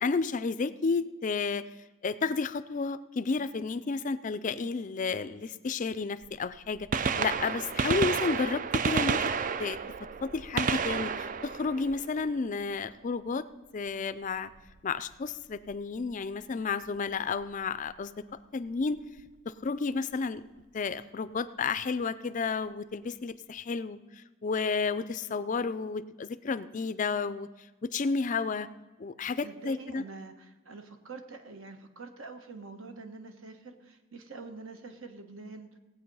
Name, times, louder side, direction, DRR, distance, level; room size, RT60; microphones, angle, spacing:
voice 1, 0.0-1.6 2.0-9.2 9.6-9.8 10.2-13.5 13.7-14.5 14.8-18.1 18.5-19.0 19.5-20.4 20.7-27.5 27.8-28.7 29.0-30.0, left 4 dB, 35° left, 14 dB, 0.4 m, -31 dB
Gunshot gunfire, 6.2-6.3 6.8-12.6 14.6-14.7 15.7-15.8 17.4-17.5 18.9-19.0 19.2-19.3, right 5 dB, 40° right, 0.4 m, -31 dB
voice 2, 29.4-35.8, right 3 dB, 70° right, 6 dB, 1.3 m, -46 dB
17.5 x 8.1 x 5.5 m, 1.2 s
head